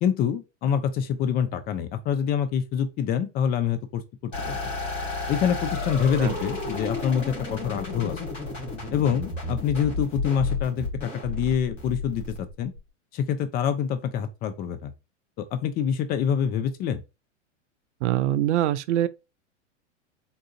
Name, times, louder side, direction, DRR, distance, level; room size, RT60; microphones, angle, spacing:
voice 1, 0.0-4.7 5.3-8.2 8.9-12.7 13.1-14.9 15.4-17.0, left 8 dB, 25° left, 0.5 m, -26 dB
sound 1, 4.3-12.8, left 3 dB, 80° left, 2.0 m, -32 dB
voice 2, 18.0-19.1, right 13 dB, 65° right, 0.5 m, -23 dB
3.8 x 2.4 x 2.7 m
hypercardioid pair, 100°, 37 cm